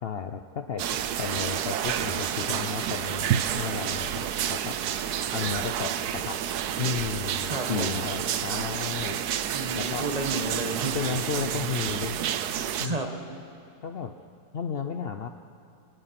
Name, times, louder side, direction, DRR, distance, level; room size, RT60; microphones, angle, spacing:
voice 1, 0.0-4.8 5.3-6.4 6.8-9.2 9.7-10.1 10.9-12.2 12.8-13.0 13.8-14.1 14.5-15.3, left 6 dB, 75° left, 6 dB, 0.5 m, -33 dB
sound 1, 0.8-12.9, right 10 dB, 70° right, 1.2 m, -29 dB
voice 2, 7.5-8.0 9.5-11.0 11.4-11.6 12.8-13.4, right 2 dB, 25° right, 4 dB, 1.3 m, -32 dB
24.0 x 19.0 x 5.9 m, 2.5 s
omnidirectional pair, 1.9 m